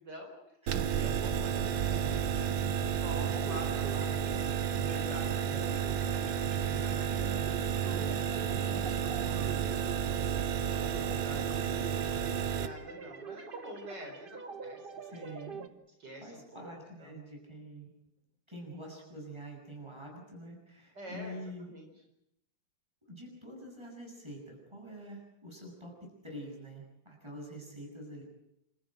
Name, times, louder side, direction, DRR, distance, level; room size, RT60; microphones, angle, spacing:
voice 1, 0.0-0.6 0.9-4.3 4.9-9.5 9.8-10.2 10.8-14.8 15.1-15.2 16.0-16.7 17.0-17.1 20.9-21.4 21.6-21.9 27.4-27.8, equal, 65° right, 2 dB, 4.8 m, -47 dB
voice 2, 0.6-1.1 15.1-15.7 16.2-17.9 18.5-21.7 23.1-28.2, equal, 15° right, 0 dB, 7.9 m, -46 dB
sound 1, 0.7-12.7, right 8 dB, 80° right, 1.8 m, -31 dB
sound 2, 3.1-15.7, right 6 dB, 35° right, 1.1 m, -46 dB
28.0 x 14.5 x 9.1 m, 0.83 s
omnidirectional pair, 2.0 m